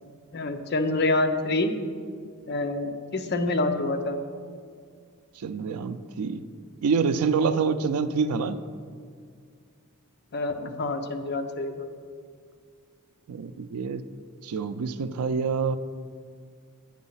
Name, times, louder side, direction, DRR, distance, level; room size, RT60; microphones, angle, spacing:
voice 1, 0.3-1.7 2.5-4.2 10.3-11.9, left 2 dB, 50° left, 7 dB, 0.6 m, -27 dB
voice 2, 5.4-6.4 6.8-8.6 13.3-14.0 14.4-15.8, right 5 dB, 85° right, 12 dB, 0.4 m, -26 dB
9.0 x 5.1 x 5.5 m, 2.1 s
head